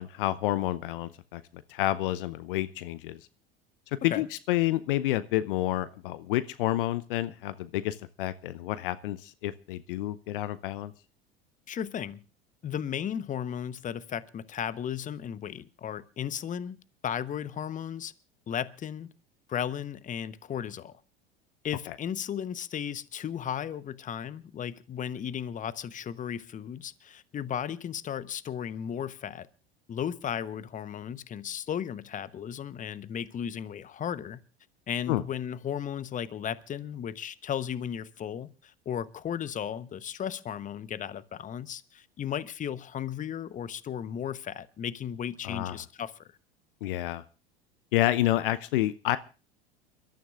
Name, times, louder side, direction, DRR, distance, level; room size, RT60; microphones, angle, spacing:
voice 1, 0.0-1.4 1.7-3.2 4.0-10.9 35.1-35.2 45.4-45.7 46.8-47.2 47.9-49.2, left 15 dB, 65° left, 0.7 m, -29 dB
voice 2, 11.7-12.2 12.6-16.8 17.0-18.1 18.5-19.1 19.5-20.9 21.6-29.5 29.9-34.4 34.9-46.1, left 9 dB, 25° left, 0.9 m, -35 dB
29.0 x 13.0 x 2.4 m
hypercardioid pair, 80°, 29 cm